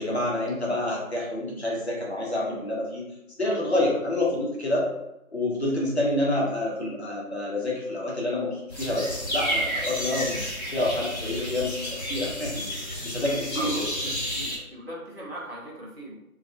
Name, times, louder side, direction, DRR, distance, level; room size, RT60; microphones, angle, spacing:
voice 1, 0.0-3.0 3.4-4.9 5.3-13.8, left 1 dB, 50° left, -4 dB, 0.8 m, -28 dB
sound 1, 8.7-14.6, equal, 30° left, 1.2 m, -31 dB
voice 2, 13.5-13.9 14.3-16.1, right 1 dB, 45° right, -6 dB, 0.8 m, -38 dB
2.5 x 2.3 x 2.5 m, 0.87 s
figure-of-eight pair, 170°, 43 cm